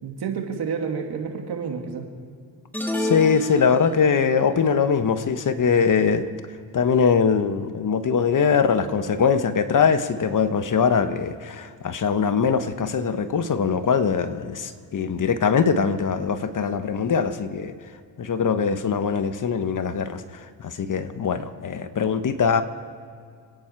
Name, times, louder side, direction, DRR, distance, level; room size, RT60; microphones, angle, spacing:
voice 1, 0.0-2.1, right 6 dB, 65° right, 2 dB, 2.7 m, -29 dB
sound 1, 2.7-4.3, left 1 dB, 5° left, 1.8 m, -29 dB
voice 2, 3.0-6.3 6.7-17.7 18.2-20.2 20.6-22.6, left 6 dB, 50° left, 10 dB, 1.2 m, -22 dB
28.0 x 10.0 x 4.6 m, 2.2 s
cardioid pair, 75°, 42 cm